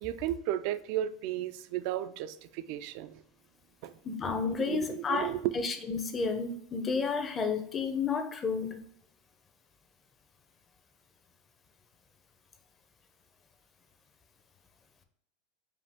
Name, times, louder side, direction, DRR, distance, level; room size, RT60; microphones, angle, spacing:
voice 1, 0.0-3.2 3.8-3.9 4.6-5.6, right 12 dB, 55° right, 0.3 m, -34 dB
voice 2, 4.0-8.8, left 5 dB, 20° left, 0.6 m, -31 dB
5.1 x 2.6 x 3.5 m
supercardioid pair, 145°, 0 cm